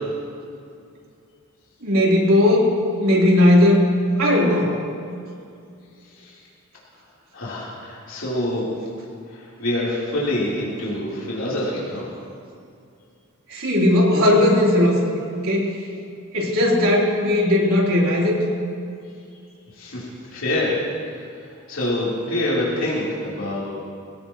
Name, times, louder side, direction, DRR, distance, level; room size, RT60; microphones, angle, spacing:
voice 1, 1.8-2.7 3.0-3.9 4.2-4.8 13.5-15.0 15.4-15.6 16.3-18.4, left 1 dB, 90° right, -4 dB, 3.5 m, -17 dB
voice 2, 7.3-8.7 9.3-12.1 19.7-20.8 21.4-23.7, left 1 dB, 70° left, -7 dB, 3.5 m, -26 dB
22.5 x 16.5 x 3.0 m, 2.4 s
head